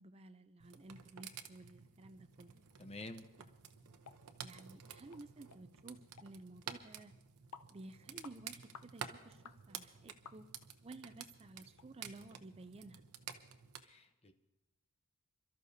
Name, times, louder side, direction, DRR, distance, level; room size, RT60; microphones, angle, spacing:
voice 1, 0.0-2.6 4.4-7.1 7.7-10.5 10.8-13.0, right 2 dB, 25° right, 10 dB, 0.5 m, -54 dB
sound 1, 0.6-13.8, right 7 dB, 85° right, 0.8 m, -52 dB
voice 2, 2.8-3.3 13.8-14.3, left 2 dB, 30° left, 8 dB, 0.8 m, -49 dB
sound 2, 4.0-4.2 4.6-4.7 5.1-5.2 5.5-5.6 6.2-6.3 6.8-6.9 7.5-7.7 8.2-8.4 8.7-8.9 9.4-9.6 10.3-10.7 11.2-11.3 11.8-11.9 12.3-12.4, left 6 dB, 85° left, 0.6 m, -55 dB
27.5 x 13.0 x 2.7 m, 1.0 s
head